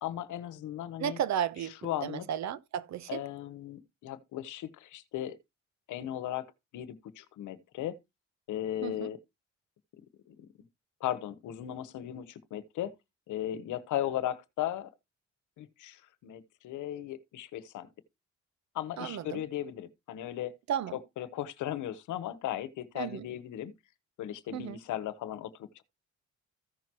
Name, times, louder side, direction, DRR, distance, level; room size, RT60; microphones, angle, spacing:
voice 1, 0.0-1.2 1.8-2.3 3.1-5.4 5.9-6.5 6.7-8.0 8.5-9.2 10.3-10.5 11.0-12.9 13.3-14.9 15.6-17.9 18.7-20.5 20.9-23.7 24.2-25.8, left 12 dB, 85° left, 1.1 m, -36 dB
voice 2, 1.0-1.7 2.0-3.2 8.8-9.1 19.0-19.4 20.7-21.0 23.0-23.2 24.5-24.8, right 9 dB, 65° right, 0.9 m, -33 dB
14.5 x 6.0 x 3.0 m
cardioid pair, 90°, 30 cm